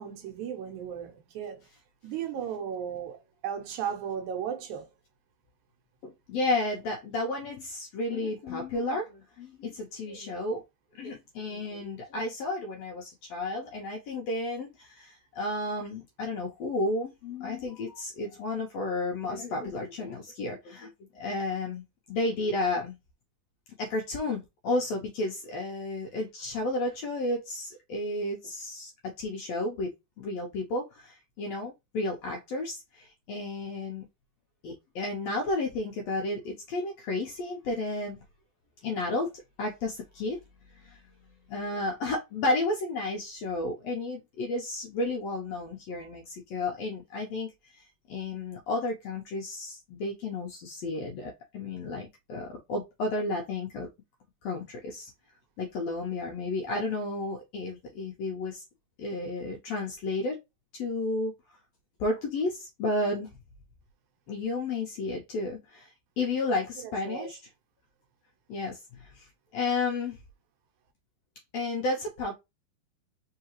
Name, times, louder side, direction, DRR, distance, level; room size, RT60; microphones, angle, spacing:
voice 1, 0.0-1.7 2.0-4.9 66.8-67.4, right 8 dB, 75° right, 2.0 m, -36 dB
voice 2, 6.0-10.6 10.9-23.0 23.8-28.9 29.2-34.1 34.6-38.2 38.8-39.3 39.6-40.4 40.7-41.0 41.5-53.9 54.4-55.1 55.6-58.6 59.0-60.4 60.7-61.3 62.0-63.3 64.3-67.4 68.5-70.2 71.5-72.3, left 2 dB, 75° left, 1.5 m, -32 dB
4.7 x 3.3 x 2.9 m
omnidirectional pair, 3.7 m